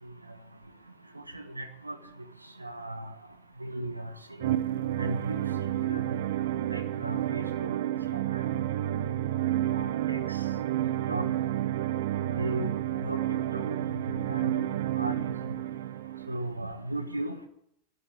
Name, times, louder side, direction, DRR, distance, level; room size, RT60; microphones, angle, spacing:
voice 1, 1.3-2.0 2.6-3.1 3.6-4.1 4.4-4.5 5.0-5.4 5.9-6.0 6.7-7.4 8.1-8.6 9.7-10.4 11.1-11.3 12.3-12.7 12.9-13.2 13.5-14.6 15.0-15.1 16.3-17.4, right 1 dB, 85° right, 7 dB, 1.3 m, -36 dB
sound 1, 4.4-16.4, right 13 dB, 55° right, 0.7 m, -30 dB
12.5 x 10.0 x 9.8 m, 0.76 s
figure-of-eight pair, 90°, 0 cm